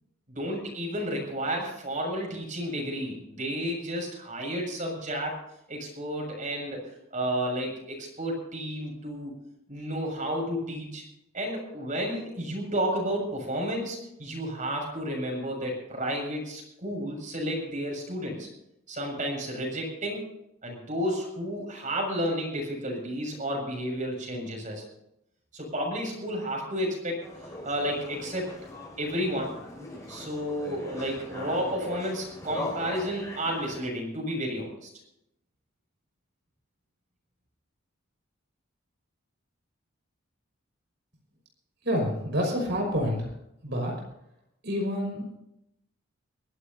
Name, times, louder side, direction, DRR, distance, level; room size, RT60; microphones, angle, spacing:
voice 1, 0.3-5.4 5.7-6.8 7.1-9.3 9.7-11.0 11.3-18.5 18.9-20.3 20.6-24.8 25.5-27.2 27.6-28.5 29.0-29.5 30.1-34.9, equal, 40° right, 0 dB, 6.9 m, -31 dB
sound 1, 27.2-33.9, left 2 dB, 15° left, 6.1 m, -40 dB
voice 2, 41.8-43.3 43.6-43.9 44.6-45.3, equal, 60° right, 0 dB, 5.7 m, -28 dB
23.0 x 16.0 x 2.8 m, 0.80 s
head